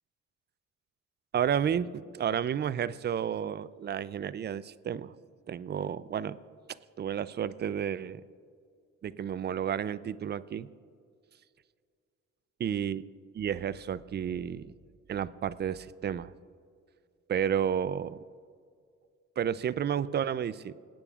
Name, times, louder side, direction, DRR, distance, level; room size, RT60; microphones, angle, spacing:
voice 1, 1.3-5.1 5.5-6.4 6.7-8.2 9.0-10.7 12.6-13.0 13.3-14.7 15.1-16.3 17.3-18.2 19.4-20.7, right 8 dB, 35° right, 16 dB, 0.4 m, -31 dB
22.5 x 9.0 x 2.4 m, 2.2 s
cardioid pair, 90°, 30 cm